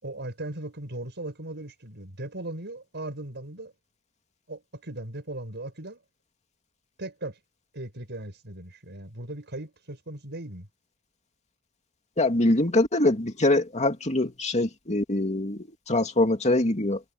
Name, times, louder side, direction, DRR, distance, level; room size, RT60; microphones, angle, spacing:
voice 1, 0.0-3.7 4.5-6.0 7.0-7.4 7.7-10.7, right 1 dB, 55° right, 5.9 m, -38 dB
voice 2, 12.2-17.0, left 2 dB, 30° left, 2.7 m, -24 dB
head